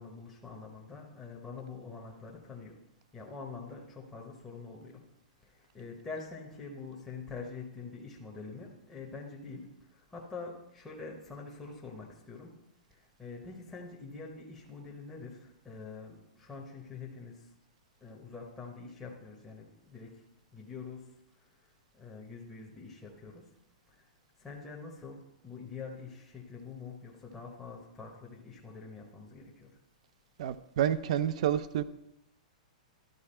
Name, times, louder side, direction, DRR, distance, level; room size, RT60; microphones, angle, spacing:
voice 1, 0.0-2.8 3.1-5.0 5.4-12.5 12.9-17.5 18.0-20.2 20.5-21.1 21.4-23.4 23.9-24.1 24.4-29.8, left 4 dB, 10° left, 0.9 m, -45 dB
voice 2, 30.4-31.8, right 10 dB, 55° right, 0.4 m, -29 dB
12.0 x 4.6 x 4.4 m
hypercardioid pair, 160°, 4 cm